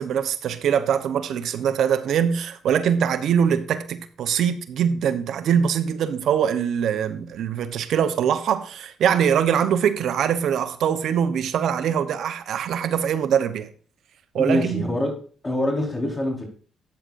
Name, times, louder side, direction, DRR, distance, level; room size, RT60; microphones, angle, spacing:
voice 1, 0.0-13.7 14.3-15.0, right 8 dB, 70° right, 0.9 m, -23 dB
voice 2, 14.4-16.4, left 1 dB, 20° left, 4.6 m, -25 dB
13.0 x 8.9 x 2.6 m
cardioid pair, 90°, 0 cm